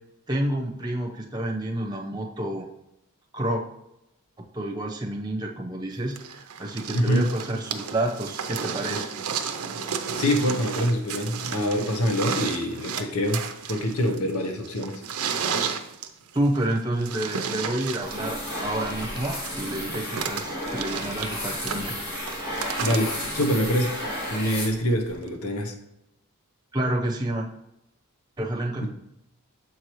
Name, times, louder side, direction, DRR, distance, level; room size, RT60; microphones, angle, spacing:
voice 1, 0.3-2.7 3.3-3.6 4.5-9.1 16.3-21.9 26.7-27.5 28.4-28.9, right 1 dB, 20° right, -1 dB, 0.8 m, -29 dB
sound 1, 6.2-24.2 25.3-25.4, right 6 dB, 90° right, 0.6 m, -33 dB
voice 2, 6.9-7.3 10.2-13.4 13.7-15.0 22.8-24.0 24.3-25.7, equal, 85° left, 3 dB, 0.8 m, -25 dB
sound 2, 18.0-25.1, left 1 dB, 45° left, 2.2 m, -33 dB
7.2 x 4.7 x 3.0 m, 0.83 s
head